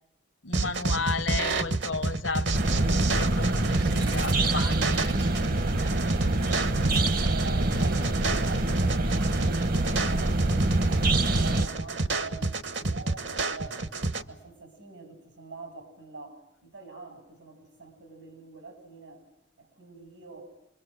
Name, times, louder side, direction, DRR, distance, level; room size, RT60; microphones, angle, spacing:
voice 1, 0.4-5.1, left 4 dB, 85° left, 1.1 m, -34 dB
sound 1, 0.5-14.2, right 3 dB, 70° right, 1.2 m, -29 dB
sound 2, 2.5-11.7, right 2 dB, 50° right, 0.9 m, -26 dB
voice 2, 6.6-10.5 11.0-13.8 14.2-19.2 19.6-20.5, right 3 dB, 85° right, 6.5 m, -44 dB
27.0 x 23.0 x 7.8 m
head